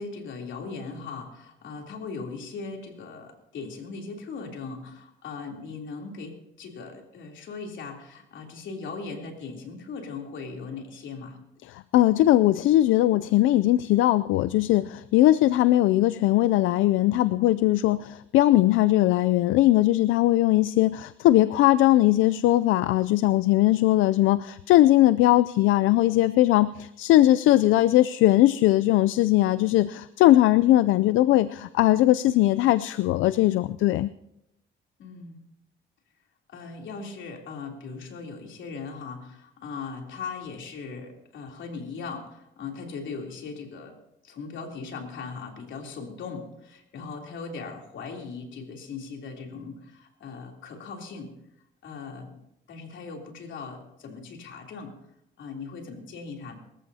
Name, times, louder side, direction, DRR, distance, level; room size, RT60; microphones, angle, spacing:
voice 1, 0.0-11.4 35.0-35.4 36.5-44.0 44.2-51.3 51.8-52.3 52.7-54.9 55.4-56.6, left 4 dB, 70° left, 1 dB, 3.2 m, -39 dB
voice 2, 11.7-34.1, left 15 dB, 90° left, 16 dB, 0.4 m, -20 dB
23.5 x 14.0 x 2.8 m, 0.82 s
cardioid pair, 90°, 20 cm